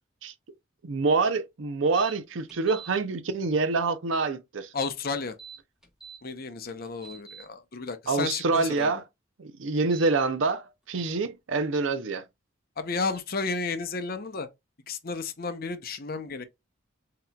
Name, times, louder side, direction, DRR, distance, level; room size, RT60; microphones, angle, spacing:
voice 1, 0.8-4.7 8.1-9.0 9.4-12.2, right 3 dB, 70° right, 0.6 m, -26 dB
sound 1, 2.0-2.1 2.5-2.9 5.2-6.2 6.7-7.4 9.8-10.1 11.0-11.1, right 7 dB, 5° right, 1.2 m, -45 dB
voice 2, 4.7-5.4 6.2-8.9 12.8-14.5 14.9-16.4, left 4 dB, 45° left, 0.7 m, -32 dB
7.4 x 2.9 x 2.3 m
head